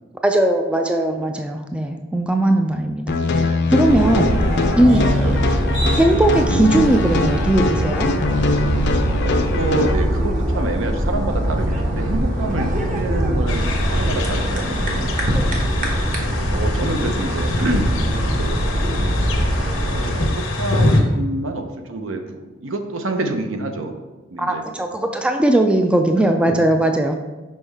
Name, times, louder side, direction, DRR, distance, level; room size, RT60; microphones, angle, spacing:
voice 1, 0.2-4.3 4.8-5.0 6.0-8.1 15.3-15.5 24.4-27.1, right 1 dB, 5° right, 4 dB, 0.3 m, -18 dB
sound 1, 3.1-9.9, left 2 dB, 55° left, 0.5 m, -22 dB
sound 2, 3.8-20.3, equal, 40° right, 1.0 m, -22 dB
voice 2, 9.2-15.1 16.5-17.9 18.3-18.6 19.7-23.9 24.3-24.6, right 2 dB, 70° right, 6 dB, 0.6 m, -27 dB
sound 3, 13.5-21.0, left 2 dB, 90° left, 0.9 m, -25 dB
5.5 x 5.3 x 3.4 m, 1.2 s
head